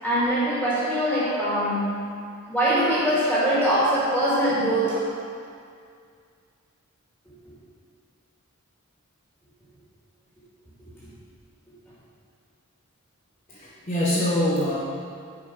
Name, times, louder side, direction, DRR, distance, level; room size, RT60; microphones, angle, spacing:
voice 1, 0.0-2.0 2.5-5.1, right 1 dB, ahead, -10 dB, 2.5 m, -22 dB
voice 2, 13.5-14.8, left 1 dB, 30° left, -7 dB, 1.2 m, -24 dB
11.0 x 5.6 x 4.9 m, 2.2 s
head